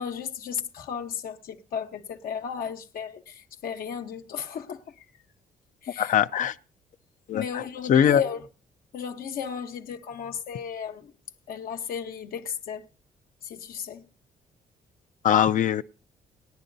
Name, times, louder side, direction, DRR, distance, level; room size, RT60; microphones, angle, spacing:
voice 1, 0.0-5.0 5.8-6.1 7.3-8.4 8.9-11.1 11.5-12.9 13.4-14.0, left 7 dB, 75° left, 1.1 m, -35 dB
voice 2, 6.0-6.6 7.3-7.6 7.9-8.3 15.2-15.8, left 9 dB, 60° left, 0.5 m, -21 dB
19.5 x 10.0 x 2.6 m
cardioid pair, 100°, 15 cm